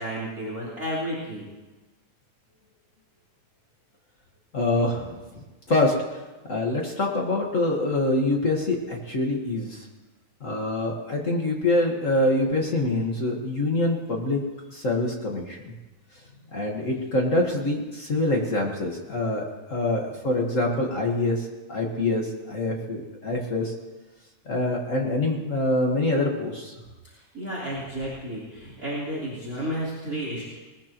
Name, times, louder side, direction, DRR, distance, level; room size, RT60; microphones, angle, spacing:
voice 1, 0.0-1.5 27.1-30.6, equal, 25° right, -6 dB, 3.8 m, -32 dB
voice 2, 4.5-5.2 5.7-6.2 6.5-9.9 10.4-14.4 14.7-15.7 16.5-23.7 24.5-26.7, left 2 dB, 50° left, 0 dB, 0.9 m, -25 dB
20.5 x 20.0 x 3.0 m, 1.2 s
omnidirectional pair, 4.0 m